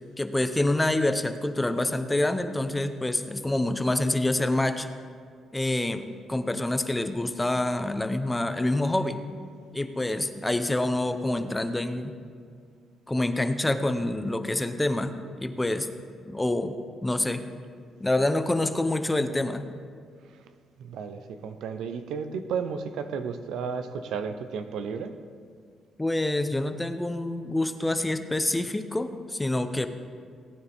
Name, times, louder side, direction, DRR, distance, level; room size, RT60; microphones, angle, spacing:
voice 1, 0.2-4.9 5.5-9.2 9.7-12.2 13.1-15.9 16.3-16.8 17.0-17.4 18.0-19.7 26.0-29.9, left 1 dB, 15° left, 9 dB, 0.7 m, -27 dB
voice 2, 20.8-25.1, right 6 dB, 80° right, 9 dB, 0.7 m, -33 dB
18.5 x 9.6 x 3.5 m, 2.1 s
cardioid pair, 90°, 0 cm